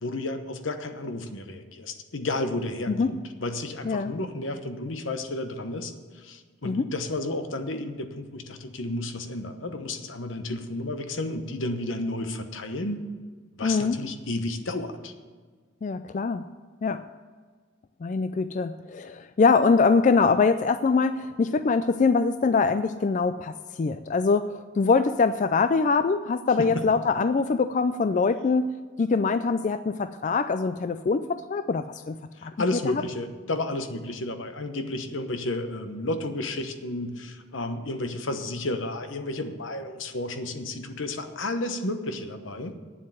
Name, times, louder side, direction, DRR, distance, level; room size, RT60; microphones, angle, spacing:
voice 1, 0.0-13.0 13.5-15.1 26.6-26.8 32.4-42.8, left 2 dB, 80° left, 8 dB, 1.1 m, -32 dB
voice 2, 13.6-14.0 15.8-16.4 16.8-17.0 18.0-28.7 29.0-32.5 32.9-33.0, left 4 dB, 40° left, 11 dB, 0.3 m, -23 dB
9.2 x 7.5 x 9.0 m, 1.5 s
head